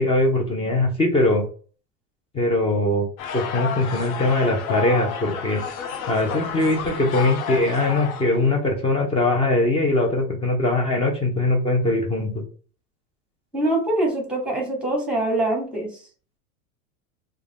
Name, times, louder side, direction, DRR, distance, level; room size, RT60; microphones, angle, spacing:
voice 1, 0.0-1.4 2.3-3.1 3.3-5.6 6.1-12.4, left 2 dB, 15° left, 1 dB, 0.4 m, -21 dB
sound 1, 3.2-8.5, left 7 dB, 90° left, 0.7 m, -31 dB
voice 2, 13.5-16.0, right 1 dB, 5° right, 0 dB, 1.0 m, -24 dB
2.3 x 2.1 x 3.4 m, 0.40 s
supercardioid pair, 115°, 41 cm